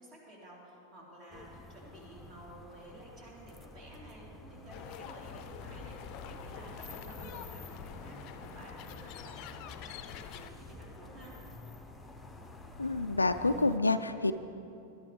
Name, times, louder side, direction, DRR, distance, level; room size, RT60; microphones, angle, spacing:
voice 1, 0.0-11.3, right 1 dB, 35° right, -3 dB, 3.6 m, -52 dB
sound 1, 1.3-13.8, left 2 dB, 10° left, 0.9 m, -50 dB
sound 2, 4.7-10.5, left 8 dB, 40° left, 0.6 m, -46 dB
voice 2, 12.8-14.3, left 2 dB, 80° left, 9 dB, 0.3 m, -28 dB
19.0 x 11.5 x 3.4 m, 2.8 s
figure-of-eight pair, 90°, 0 cm